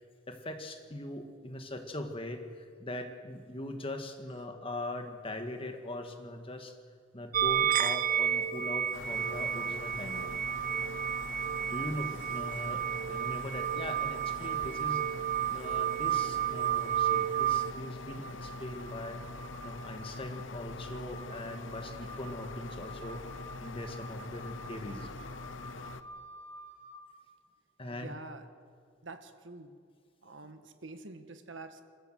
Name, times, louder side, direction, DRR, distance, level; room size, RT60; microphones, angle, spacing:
voice 1, 0.3-6.8 7.1-10.4 11.7-15.1 15.5-19.2 19.6-25.1 27.8-28.1, left 1 dB, 30° left, 5 dB, 1.8 m, -41 dB
sound 1, 7.3-17.7, right 10 dB, 45° right, 0.7 m, -31 dB
sound 2, 8.9-26.0, left 2 dB, 70° left, 0.9 m, -44 dB
Wind instrument woodwind instrument, 17.3-27.0, equal, 80° right, 7.7 m, -50 dB
voice 2, 27.9-28.5 29.0-29.8 30.2-31.8, right 3 dB, 65° right, 8 dB, 1.5 m, -46 dB
28.0 x 14.5 x 7.6 m, 2.2 s
head